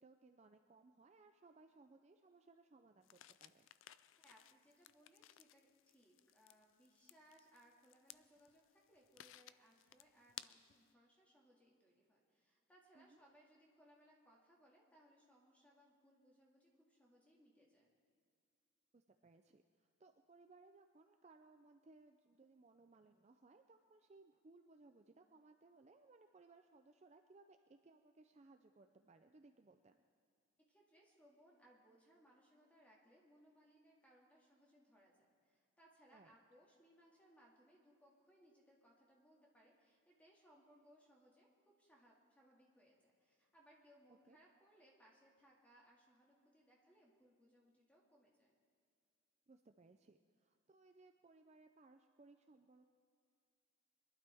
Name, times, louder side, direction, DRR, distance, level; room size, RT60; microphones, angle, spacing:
voice 1, 0.0-3.7 12.9-13.2 18.9-30.0 36.1-36.3 44.3-44.4 49.5-52.9, right 3 dB, 30° right, 6 dB, 0.4 m, -65 dB
sound 1, 3.0-10.9, left 13 dB, 70° left, 0.4 m, -60 dB
voice 2, 4.2-17.9 30.6-48.5, equal, 5° left, -3 dB, 2.1 m, -69 dB
22.0 x 12.0 x 3.5 m, 2.3 s
head